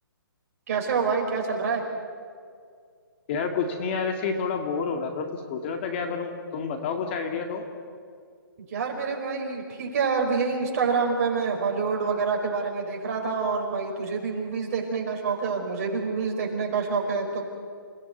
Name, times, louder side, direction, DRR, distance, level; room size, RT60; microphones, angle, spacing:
voice 1, 0.7-1.8 8.7-17.4, right 5 dB, 40° right, 1 dB, 5.2 m, -27 dB
voice 2, 3.3-7.6, left 5 dB, 30° left, 4 dB, 2.1 m, -29 dB
28.5 x 17.5 x 9.5 m, 2.1 s
hypercardioid pair, 165°, 12 cm